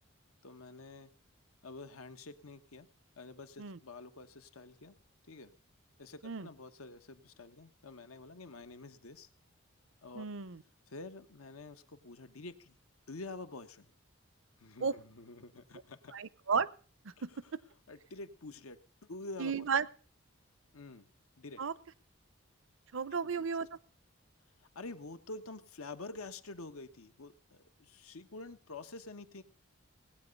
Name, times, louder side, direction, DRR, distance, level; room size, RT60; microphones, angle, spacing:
voice 1, 0.4-1.1 1.6-2.9 3.2-5.0 5.3-5.5 6.0-9.3 10.0-10.2 10.9-12.8 13.1-13.9 14.6-16.1 17.2-17.5 17.9-19.6 20.7-21.1 21.4-21.6 24.6-29.4, left 3 dB, 90° left, 10 dB, 1.2 m, -48 dB
voice 2, 10.1-10.6 14.8-14.9 16.1-16.7 17.0-17.4 19.4-19.9 21.6-21.7 22.9-23.7, right 5 dB, 65° right, 18 dB, 0.6 m, -33 dB
19.0 x 8.7 x 5.3 m, 0.41 s
head